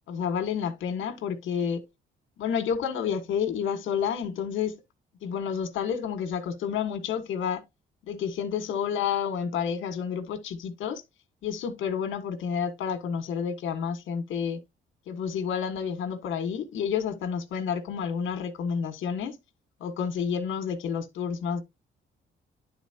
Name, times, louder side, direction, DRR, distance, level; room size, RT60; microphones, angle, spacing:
voice 1, 0.1-1.8 2.4-4.8 5.2-7.6 8.1-11.0 11.4-14.6 15.1-19.4 19.8-21.6, left 7 dB, 75° left, 1.7 m, -30 dB
11.5 x 4.1 x 2.9 m
cardioid pair, 90°, 20 cm